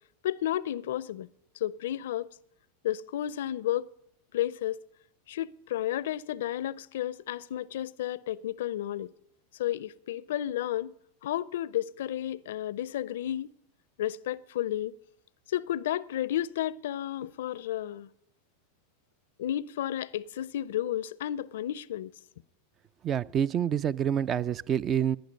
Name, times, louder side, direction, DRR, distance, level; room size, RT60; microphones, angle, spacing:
voice 1, 0.2-1.3 1.6-2.3 2.8-3.9 4.3-4.8 5.3-9.1 9.6-13.5 14.0-14.9 15.5-18.1 19.4-22.2, left 12 dB, 75° left, 0.4 m, -32 dB
voice 2, 23.0-25.2, right 9 dB, 35° right, 0.4 m, -27 dB
18.0 x 10.0 x 5.3 m
hypercardioid pair, 100°, 0 cm